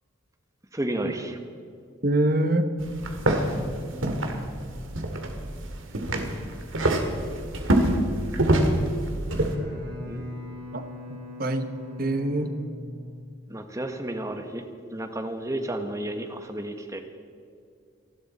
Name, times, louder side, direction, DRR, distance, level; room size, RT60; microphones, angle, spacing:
voice 1, 0.7-1.4 10.1-10.3 13.5-14.6 14.9-17.0, right 1 dB, 15° right, 6 dB, 1.3 m, -32 dB
voice 2, 2.0-2.7 10.7-11.7 12.0-12.5, right 1 dB, 45° right, 8 dB, 1.1 m, -25 dB
sound 1, 2.8-9.5, right 1 dB, 85° right, 2.0 m, -26 dB
Bowed string instrument, 9.3-13.6, left 2 dB, 65° right, 5.3 m, -41 dB
28.0 x 11.5 x 4.3 m, 2.3 s
head